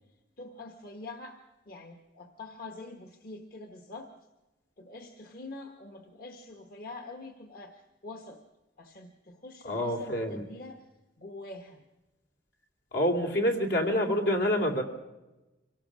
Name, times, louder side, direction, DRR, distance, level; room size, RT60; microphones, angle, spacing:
voice 1, 0.4-1.4 1.7-4.1 4.8-8.4 8.8-10.9 11.2-11.8, left 2 dB, 55° left, 4 dB, 1.3 m, -45 dB
voice 2, 9.6-10.5 12.9-14.8, equal, 75° left, 3 dB, 2.6 m, -27 dB
25.0 x 17.5 x 6.3 m, 1.1 s
head